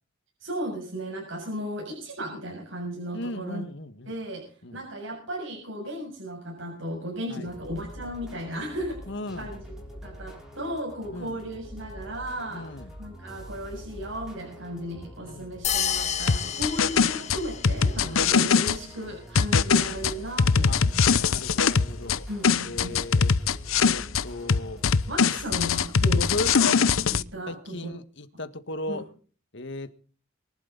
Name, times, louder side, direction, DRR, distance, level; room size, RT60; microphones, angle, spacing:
voice 1, 0.4-3.7 4.1-4.5 4.7-9.0 9.3-9.6 10.0-21.2 22.3-23.0 25.1-27.9 28.9-29.0, equal, 65° right, 7.2 m, -35 dB
voice 2, 3.1-4.1 4.6-4.8 7.3-7.5 9.1-9.5 11.1-11.4 12.5-12.9 15.2-15.5 18.0-18.3 20.7-20.8 21.2-22.3 22.6-23.3 23.8-24.8 26.1-26.5 27.5-29.1 29.5-30.0, left 2 dB, 60° left, 1.8 m, -36 dB
sound 1, 7.4-25.5, equal, 5° right, 6.1 m, -44 dB
sound 2, 15.6-17.9, left 9 dB, 35° left, 1.3 m, -30 dB
sound 3, 16.3-18.8 19.4-22.2 22.4-24.2 24.5-27.2, left 5 dB, 85° left, 0.8 m, -22 dB
24.0 x 12.0 x 4.1 m
head